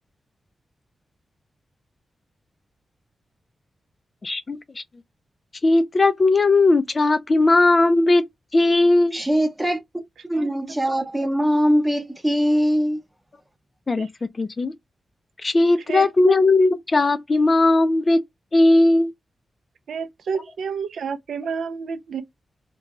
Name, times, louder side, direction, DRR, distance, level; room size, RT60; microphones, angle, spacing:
voice 1, 4.2-4.8 5.6-8.2 8.5-9.2 10.9-11.0 13.9-14.1 14.4-14.7 15.4-18.2 18.5-19.1, left 2 dB, 30° left, 0.3 m, -18 dB
voice 2, 9.1-9.8 10.3-13.0, equal, 10° right, 0.7 m, -21 dB
voice 3, 15.9-16.3 19.9-22.2, right 5 dB, 80° right, 0.4 m, -29 dB
2.6 x 2.2 x 2.9 m
wide cardioid pair, 155°, 0 cm